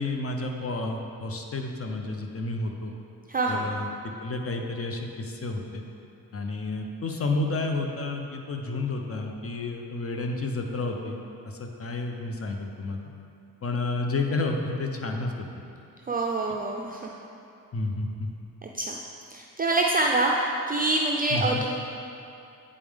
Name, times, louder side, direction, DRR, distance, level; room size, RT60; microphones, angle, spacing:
voice 1, 0.0-2.9 3.5-5.8 6.3-11.2 11.4-13.0 13.6-15.5 17.7-18.3 21.3-21.6, left 2 dB, 40° left, 3 dB, 0.7 m, -30 dB
voice 2, 3.3-3.7 16.1-17.1 18.6-19.0 19.3-21.8, right 2 dB, 25° right, -1 dB, 0.4 m, -26 dB
8.4 x 5.0 x 3.6 m, 2.6 s
cardioid pair, 80°, 37 cm